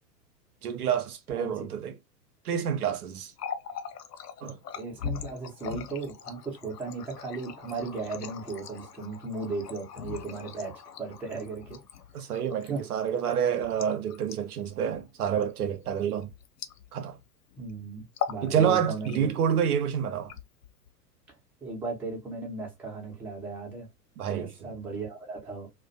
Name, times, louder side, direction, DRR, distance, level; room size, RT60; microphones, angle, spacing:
voice 1, 0.6-1.9 2.4-3.3 4.4-4.6 12.1-16.3 16.9-17.2 18.4-20.3 24.2-24.5, right 8 dB, 65° right, 0.6 m, -28 dB
voice 2, 1.4-1.7 4.4-11.8 12.2-12.3 12.6-12.8 17.6-19.3 21.6-23.9 24.3-25.7, right 4 dB, 5° right, 0.6 m, -36 dB
Water tap faucet, 3.2-17.2 17.5-17.7 18.1-18.5 18.8-19.5 20.1-20.9, left 8 dB, 75° left, 0.6 m, -40 dB
2.4 x 2.1 x 2.5 m
figure-of-eight pair, 100°, 48 cm